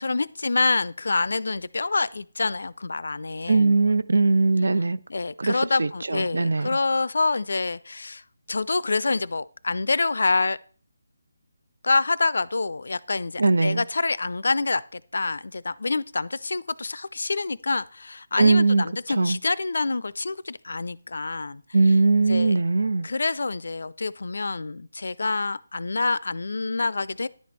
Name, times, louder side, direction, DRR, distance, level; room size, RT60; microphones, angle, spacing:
voice 1, 0.0-3.8 5.1-8.2 8.5-10.6 11.8-21.6 22.3-22.6 23.0-27.3, left 3 dB, 75° left, 0.4 m, -27 dB
voice 2, 3.5-5.0 5.4-6.7 13.4-13.8 18.4-18.8 19.2-19.4 21.7-23.1, right 3 dB, 75° right, 0.5 m, -20 dB
10.5 x 4.3 x 4.6 m
figure-of-eight pair, 165°, 0 cm